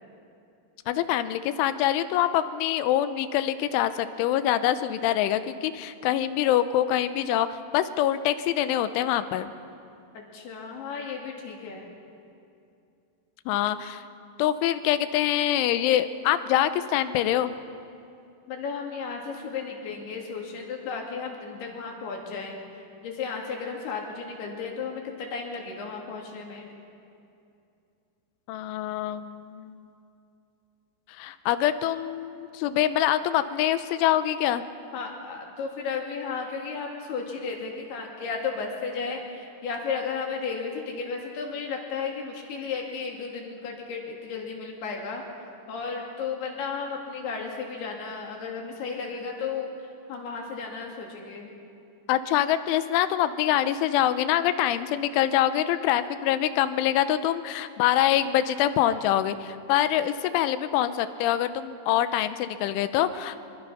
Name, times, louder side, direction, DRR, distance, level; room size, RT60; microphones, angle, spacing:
voice 1, 0.9-9.5 13.5-14.0 14.4-17.5 28.5-29.8 31.2-34.6 52.1-63.4, left 12 dB, 90° left, 12 dB, 3.2 m, -25 dB
voice 2, 10.1-11.9 18.5-22.6 23.0-26.7 34.9-45.2 45.7-51.5, left 5 dB, 60° left, 0 dB, 4.3 m, -34 dB
24.5 x 23.5 x 5.7 m, 2.6 s
omnidirectional pair, 5.4 m